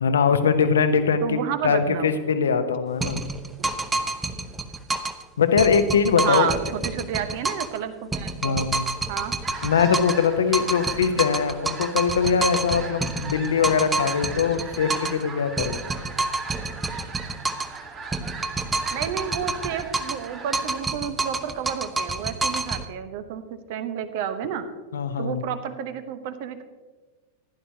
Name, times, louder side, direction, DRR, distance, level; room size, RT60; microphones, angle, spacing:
voice 1, 0.0-3.2 5.4-6.5 8.4-8.9 9.6-15.8 24.9-25.4, left 6 dB, 65° left, 9 dB, 0.8 m, -22 dB
voice 2, 1.2-2.2 6.2-8.5 9.1-9.4 18.9-24.7 25.2-26.6, right 8 dB, 50° right, 10 dB, 1.0 m, -30 dB
sound 1, 3.0-5.2 5.6-7.8 8.1-10.3 10.5-15.2 15.6-17.8 18.1-20.3 20.5-22.8, right 3 dB, 15° right, 0.7 m, -28 dB
sound 2, 9.4-20.8, right 4 dB, 30° right, 2.5 m, -39 dB
15.5 x 11.0 x 2.8 m, 1.3 s
figure-of-eight pair, 90°, 0 cm